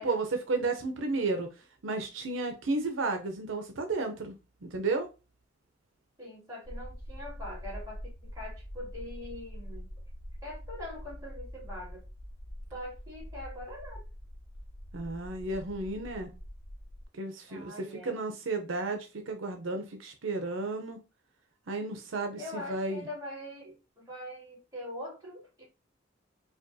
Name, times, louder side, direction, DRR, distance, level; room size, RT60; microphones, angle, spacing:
voice 1, 0.0-1.5 1.8-4.4 4.6-5.1 14.9-16.3 17.2-21.0 21.7-23.1, right 3 dB, 80° right, 5 dB, 0.6 m, -33 dB
voice 2, 6.2-9.9 10.4-12.0 12.7-14.0 17.5-18.2 22.4-25.7, left 1 dB, 20° right, -5 dB, 2.1 m, -43 dB
sound 1, 6.6-17.1, equal, 70° left, 0.7 m, -44 dB
5.0 x 2.3 x 2.6 m, 0.29 s
head